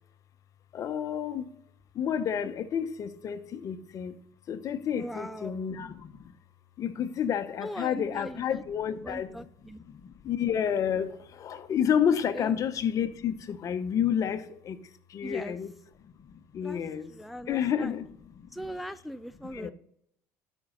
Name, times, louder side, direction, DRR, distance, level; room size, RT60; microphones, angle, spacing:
voice 1, 0.7-1.5 1.9-4.2 4.5-6.3 6.8-9.4 9.9-14.8 15.1-15.7 16.0-16.1 16.5-17.1 17.4-18.1 18.4-18.5 19.5-19.7, left 8 dB, 50° left, 0.9 m, -30 dB
voice 2, 5.0-5.5 7.6-8.6 9.0-9.8 12.3-12.6 15.2-15.6 16.6-16.8 17.1-17.9 18.5-19.7, equal, ahead, 0.4 m, -40 dB
12.5 x 5.4 x 3.9 m
supercardioid pair, 85°, 7 cm